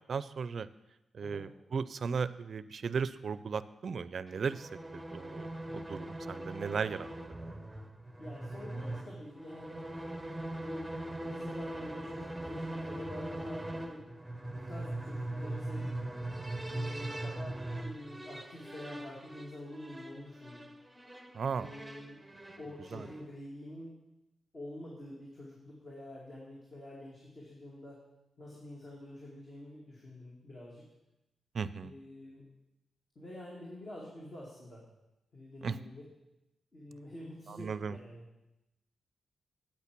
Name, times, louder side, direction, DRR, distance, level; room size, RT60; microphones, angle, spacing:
voice 1, 0.1-0.7 1.1-7.1 21.3-21.7 22.9-23.1 31.5-31.9 35.6-35.8 37.5-38.0, right 5 dB, 60° right, 15 dB, 0.4 m, -36 dB
sound 1, 4.3-23.3, right 1 dB, 5° right, 0.8 m, -41 dB
voice 2, 8.2-9.9 10.6-14.1 14.4-15.9 16.7-20.6 21.6-22.2 22.6-24.0 24.5-28.0 28.4-30.9 31.8-32.4 33.2-34.8 35.3-36.0 36.7-38.2, left 1 dB, 40° left, -4 dB, 2.2 m, -47 dB
8.7 x 8.3 x 6.0 m, 0.93 s
wide cardioid pair, 105°, 0 cm